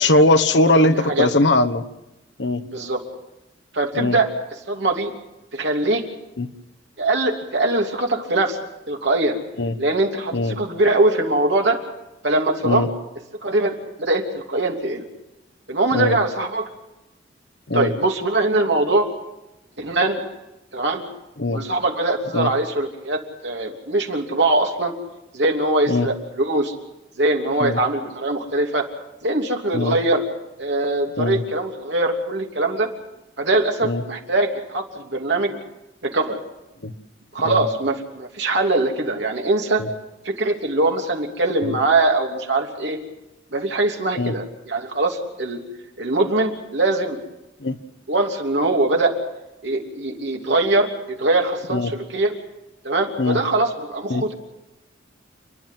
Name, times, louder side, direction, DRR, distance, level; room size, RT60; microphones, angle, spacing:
voice 1, 0.0-1.8 2.4-2.6 4.0-4.2 6.4-6.5 9.6-9.7 10.3-10.6 12.6-12.9 15.9-16.2 17.7-17.9 21.4-21.6 22.3-22.5 25.9-26.1 27.6-27.8 29.7-29.9 31.2-31.4 33.8-34.0 36.8-36.9 37.4-37.6 39.8-39.9 41.6-41.7 44.2-44.3 47.6-47.8 51.7-51.9 53.2-53.4 54.1-54.3, left 2 dB, 70° left, 9 dB, 1.2 m, -20 dB
voice 2, 0.6-1.3 2.6-3.0 3.7-4.3 4.7-5.1 5.5-6.0 7.0-8.6 8.9-9.4 9.8-11.8 12.2-12.9 13.4-15.1 15.7-16.7 17.7-19.1 19.8-20.2 20.7-21.0 21.5-24.9 25.3-26.7 27.2-28.8 29.2-30.2 30.6-32.9 33.4-35.6 36.0-36.4 37.3-39.8 40.2-43.0 43.5-45.6 46.0-47.2 48.1-49.1 49.6-52.3 52.8-54.3, right 2 dB, 70° right, 2 dB, 3.0 m, -22 dB
29.0 x 11.0 x 9.3 m, 0.95 s
head